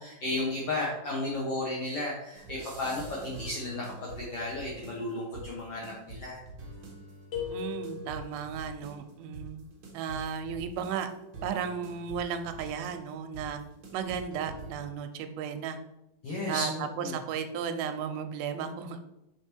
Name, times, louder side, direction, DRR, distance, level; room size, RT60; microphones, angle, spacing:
voice 1, 0.0-6.4 16.2-17.1, left 2 dB, 70° left, -4 dB, 1.4 m, -34 dB
sound 1, 2.3-14.9, right 2 dB, 65° right, 1.2 m, -46 dB
sound 2, 7.3-8.5, left 6 dB, 90° left, 1.0 m, -37 dB
voice 2, 7.5-9.7 9.9-11.1 11.4-13.6 13.9-15.8 16.5-19.0, right 7 dB, 90° right, 8 dB, 2.5 m, -34 dB
5.4 x 4.8 x 4.4 m, 0.92 s
omnidirectional pair, 4.3 m